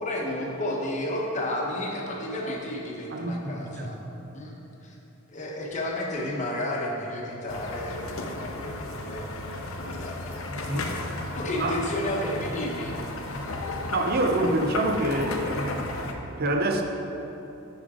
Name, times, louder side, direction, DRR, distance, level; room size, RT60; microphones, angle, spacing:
voice 1, 0.0-4.0 4.3-4.6 4.8-4.9 5.3-8.0 8.3-9.3 10.0-10.4 11.4-13.0, left 1 dB, 35° left, -2 dB, 1.0 m, -31 dB
voice 2, 3.1-3.9 10.7-10.9 11.6-11.8 13.9-15.9 16.4-16.8, right 1 dB, 45° right, 4 dB, 0.6 m, -26 dB
sound 1, 7.5-16.1, left 2 dB, 70° left, 0.7 m, -34 dB
9.9 x 5.2 x 3.7 m, 2.9 s
head